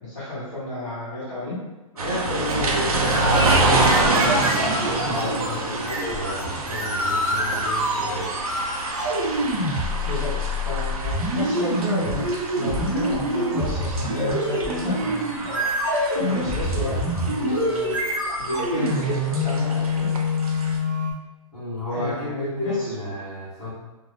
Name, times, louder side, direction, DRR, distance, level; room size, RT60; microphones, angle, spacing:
voice 1, 0.0-1.6 10.0-12.3 12.5-15.6 16.2-17.9 18.4-20.1 21.9-22.9, left 1 dB, 25° left, -11 dB, 1.1 m, -31 dB
voice 2, 1.9-8.4 21.5-23.7, left 1 dB, 5° right, -18 dB, 1.0 m, -31 dB
sound 1, 2.0-20.8, right 2 dB, 85° right, 0.6 m, -28 dB
sound 2, 2.5-21.1, equal, 35° right, 0.9 m, -26 dB
2.6 x 2.3 x 3.5 m, 1.1 s
hypercardioid pair, 180°, 18 cm